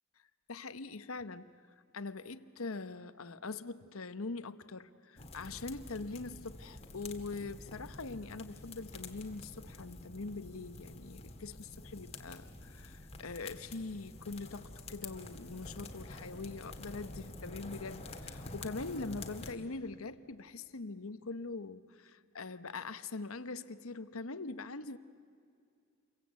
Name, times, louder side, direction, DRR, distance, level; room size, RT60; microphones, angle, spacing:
voice 1, 0.5-1.5 1.9-25.0, left 3 dB, 80° left, 12 dB, 1.0 m, -43 dB
sound 1, 5.2-19.5, left 2 dB, 30° left, 1.9 m, -48 dB
29.0 x 23.5 x 8.3 m, 2.4 s
head